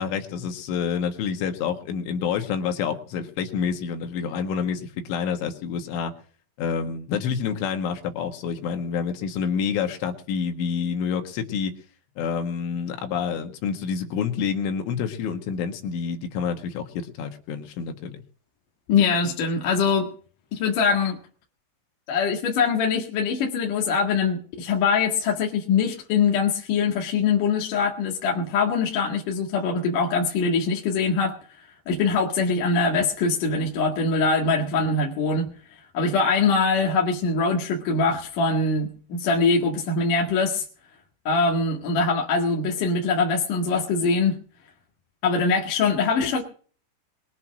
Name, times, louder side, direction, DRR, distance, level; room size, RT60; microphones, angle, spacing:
voice 1, 0.0-6.1 6.6-11.7 12.2-18.2, left 6 dB, 80° left, 6 dB, 4.1 m, -28 dB
voice 2, 18.9-20.1 20.5-21.2 22.1-31.4 31.9-35.5 35.9-40.7 41.2-44.4 45.2-46.4, left 4 dB, 55° left, 1 dB, 2.9 m, -23 dB
22.0 x 8.3 x 6.1 m, 0.42 s
omnidirectional pair, 5.6 m